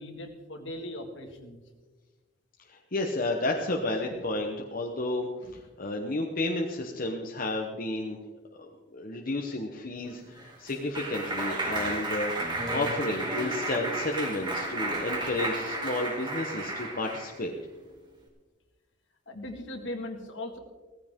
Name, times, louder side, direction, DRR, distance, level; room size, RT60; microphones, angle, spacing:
voice 1, 0.0-1.6 4.1-4.2 5.4-5.5 14.9-15.3 19.3-20.6, left 1 dB, 70° left, 4 dB, 2.0 m, -40 dB
voice 2, 2.7-5.3 5.8-8.2 8.6-17.5, left 2 dB, 45° left, 1 dB, 1.1 m, -32 dB
Clapping, 10.1-17.4, right 2 dB, 25° right, 2.3 m, -33 dB
16.5 x 15.0 x 3.7 m, 1.3 s
head